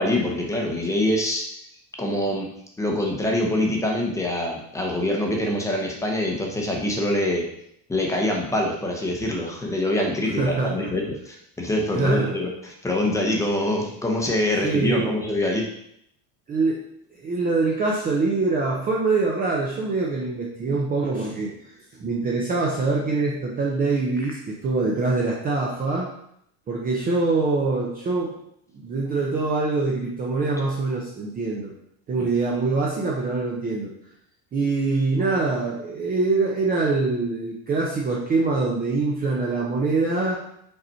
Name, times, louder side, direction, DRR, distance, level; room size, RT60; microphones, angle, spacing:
voice 1, 0.0-1.4 2.0-2.5 2.8-7.4 7.9-15.6 24.8-25.0 32.2-32.3, left 1 dB, 5° left, 0 dB, 0.8 m, -25 dB
voice 2, 10.4-10.9 11.9-12.3 14.6-15.2 16.5-16.8 17.1-26.1 26.7-28.3 28.7-31.7 32.1-33.9 34.5-40.4, right 3 dB, 20° right, -3 dB, 0.6 m, -24 dB
5.4 x 4.1 x 4.3 m, 0.74 s
cardioid pair, 160°, 42 cm